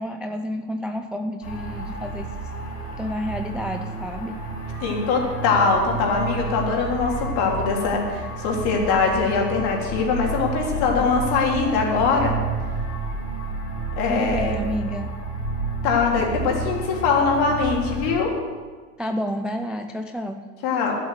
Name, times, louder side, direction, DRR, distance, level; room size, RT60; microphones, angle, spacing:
voice 1, 0.0-2.5 3.0-4.4 14.1-15.2 19.0-20.5, equal, ahead, 6 dB, 0.3 m, -30 dB
sound 1, 1.4-18.1, right 3 dB, 80° left, 3.6 m, -30 dB
voice 2, 4.8-12.4 14.0-14.6 15.8-18.3 20.6-21.0, left 5 dB, 55° left, 0 dB, 3.4 m, -22 dB
11.5 x 7.7 x 8.0 m, 1.4 s
hypercardioid pair, 85°, 47 cm